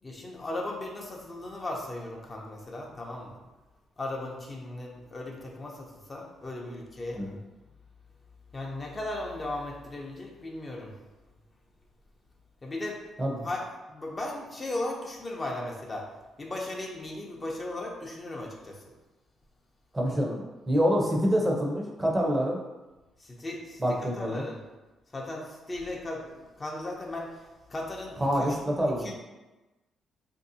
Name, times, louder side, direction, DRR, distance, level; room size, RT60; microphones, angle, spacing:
voice 1, 0.0-3.4 4.0-7.2 8.5-11.0 12.6-13.0 13.4-16.1 16.4-18.8 23.2-24.6 25.1-28.6 29.0-29.1, left 2 dB, 30° left, -1 dB, 0.6 m, -37 dB
voice 2, 19.9-22.6 23.8-24.5 28.2-29.1, equal, 15° right, -1 dB, 0.6 m, -26 dB
3.3 x 2.6 x 2.7 m, 1.1 s
cardioid pair, 90°, 0 cm